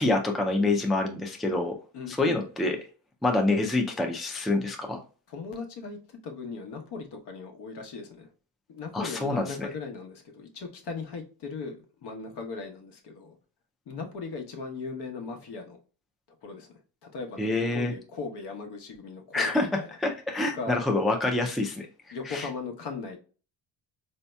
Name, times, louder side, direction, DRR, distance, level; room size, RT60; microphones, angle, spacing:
voice 1, 0.0-1.7 2.1-2.8 3.2-5.0 8.9-9.7 17.4-17.9 19.3-19.7 20.0-22.5, left 2 dB, ahead, 2 dB, 0.3 m, -27 dB
voice 2, 1.9-2.4 5.3-6.0 6.2-8.3 8.7-13.4 13.9-15.8 16.4-16.7 17.1-19.9 20.5-20.8 22.1-23.2, left 4 dB, 70° left, 3 dB, 1.0 m, -38 dB
4.1 x 2.7 x 2.2 m, 0.37 s
cardioid pair, 135°, 41 cm